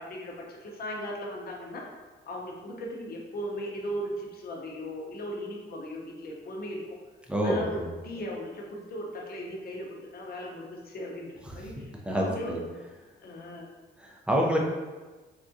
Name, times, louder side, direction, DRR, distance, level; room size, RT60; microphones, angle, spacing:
voice 1, 0.0-1.9 2.2-6.8 7.4-12.6 13.2-13.7, equal, 50° left, -1 dB, 0.7 m, -37 dB
voice 2, 7.3-7.9 12.1-12.6 14.0-14.6, equal, 5° right, -1 dB, 0.5 m, -27 dB
3.5 x 2.3 x 2.6 m, 1.3 s
cardioid pair, 90°, 20 cm